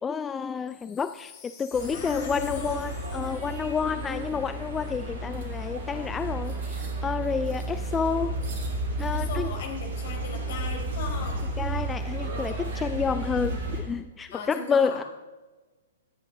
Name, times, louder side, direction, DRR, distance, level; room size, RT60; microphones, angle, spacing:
voice 1, 0.0-8.4 9.0-9.5 11.6-15.0, left 6 dB, 15° left, 12 dB, 0.4 m, -29 dB
Wind chime, 0.6-5.0 5.6-5.7, left 7 dB, 30° left, 4.2 m, -49 dB
sound 1, 1.7-13.8, right 2 dB, 50° right, 3.8 m, -32 dB
voice 2, 1.9-2.8 3.9-4.5 9.1-11.5 14.3-15.0, left 4 dB, 50° left, 2 dB, 4.3 m, -37 dB
26.5 x 10.0 x 3.8 m, 1.3 s
figure-of-eight pair, 110°, 0 cm